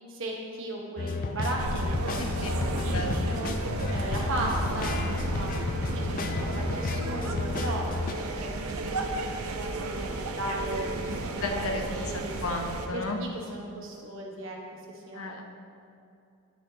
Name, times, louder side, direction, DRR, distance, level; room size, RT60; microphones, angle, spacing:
voice 1, 0.1-3.5 3.9-5.5 5.9-7.9 8.2-12.3 12.9-14.6 14.9-15.4, right 1 dB, 60° right, -1 dB, 1.2 m, -36 dB
sound 1, 1.0-8.1, left 3 dB, 40° left, 0.4 m, -31 dB
sound 2, 1.6-12.9, right 2 dB, 80° right, 0.6 m, -33 dB
voice 2, 2.2-2.5 2.9-3.2 11.1-13.2 15.1-15.4, left 2 dB, 75° left, 3 dB, 0.9 m, -34 dB
12.0 x 6.2 x 2.8 m, 2.5 s
head